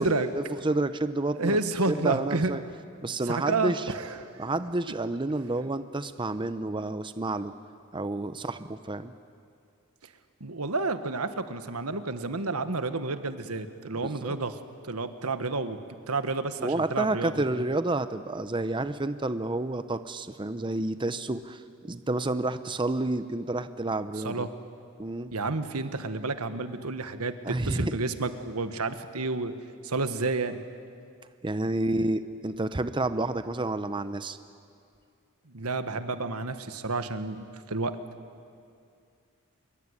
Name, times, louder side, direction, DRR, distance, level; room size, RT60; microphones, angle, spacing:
voice 1, 0.3-1.6 1.9-2.6 3.0-3.8 4.4-7.5 7.9-9.1 14.2-14.4 16.6-24.5 25.0-25.3 27.4-28.0 31.4-34.4, right 2 dB, 20° right, 11 dB, 0.7 m, -29 dB
voice 2, 1.3-2.6 3.2-4.5 10.4-14.6 14.8-15.8 16.1-17.6 24.2-24.5 25.3-29.5 29.8-30.6 35.5-38.0, right 3 dB, 90° right, 9 dB, 1.5 m, -30 dB
26.0 x 23.0 x 9.8 m, 2.4 s
head